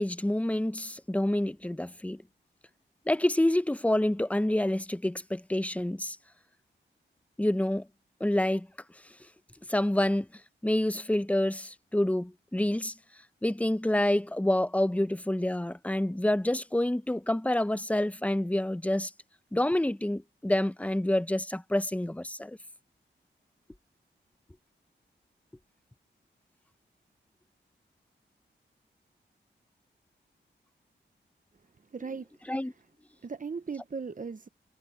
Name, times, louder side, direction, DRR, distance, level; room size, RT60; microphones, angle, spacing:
voice 1, 0.0-2.2 3.1-6.2 7.4-7.9 8.2-8.7 9.7-10.3 10.6-12.9 13.4-19.1 19.5-22.6 32.5-32.7, left 1 dB, 5° left, 0.8 m, -27 dB
voice 2, 31.9-32.5 33.2-34.5, right 5 dB, 45° right, 1.0 m, -38 dB
cardioid pair, 65°, 20 cm